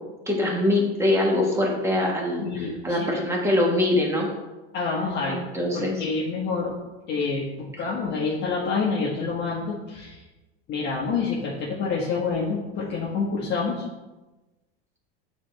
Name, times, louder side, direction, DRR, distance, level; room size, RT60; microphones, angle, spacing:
voice 1, 0.3-4.3 5.3-6.0 7.7-7.8, left 1 dB, 10° right, -1 dB, 1.4 m, -23 dB
voice 2, 2.4-3.0 4.7-5.4 5.7-6.7 7.1-10.2 10.7-13.8, left 4 dB, 35° left, -5 dB, 1.3 m, -27 dB
8.7 x 4.1 x 3.4 m, 1.1 s
supercardioid pair, 130°, 32 cm